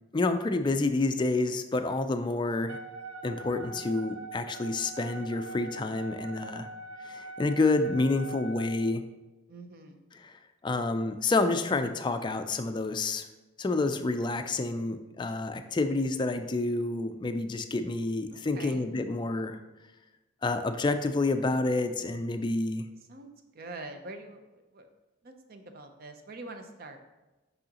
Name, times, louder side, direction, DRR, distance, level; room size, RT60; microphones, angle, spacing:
voice 1, 0.1-2.8 3.2-6.7 7.0-9.0 10.2-10.3 10.6-13.3 13.6-19.6 20.4-22.9, left 2 dB, 25° left, 8 dB, 0.3 m, -28 dB
Wind instrument woodwind instrument, 2.7-8.7, right 3 dB, 80° right, 0.9 m, -43 dB
voice 2, 9.5-10.0 18.3-18.9 23.0-24.9 25.2-27.0, right 2 dB, 50° right, 6 dB, 0.6 m, -45 dB
6.3 x 5.5 x 2.9 m, 1.1 s
head